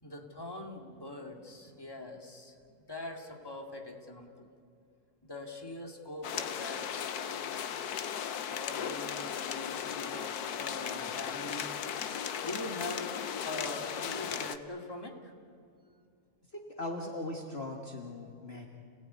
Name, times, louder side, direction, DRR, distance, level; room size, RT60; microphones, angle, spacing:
voice 1, 0.0-4.5 5.2-7.6 8.5-11.8 12.4-13.1 13.4-15.3, left 2 dB, 15° left, 2 dB, 2.4 m, -43 dB
sound 1, 6.2-14.6, left 8 dB, 80° left, 1.5 m, -36 dB
voice 2, 16.5-18.7, left 2 dB, 40° left, 1 dB, 1.8 m, -39 dB
30.0 x 18.0 x 9.5 m, 2.4 s
omnidirectional pair, 1.6 m